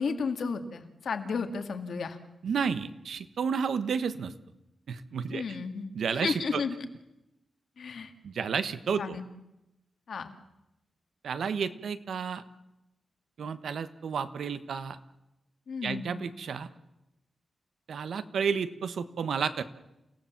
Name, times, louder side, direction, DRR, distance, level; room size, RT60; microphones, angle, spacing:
voice 1, 0.0-2.2 5.3-5.9 6.1-6.7 7.8-8.1 9.0-9.3 10.1-10.3 15.7-16.2, left 5 dB, 60° left, 7 dB, 2.0 m, -33 dB
voice 2, 2.4-4.3 4.9-5.6 5.9-6.6 8.2-9.2 11.2-12.4 13.4-15.0 15.8-16.7 17.9-19.6, right 6 dB, 70° right, 12 dB, 1.2 m, -31 dB
29.0 x 16.5 x 7.3 m, 0.92 s
wide cardioid pair, 180°, 0 cm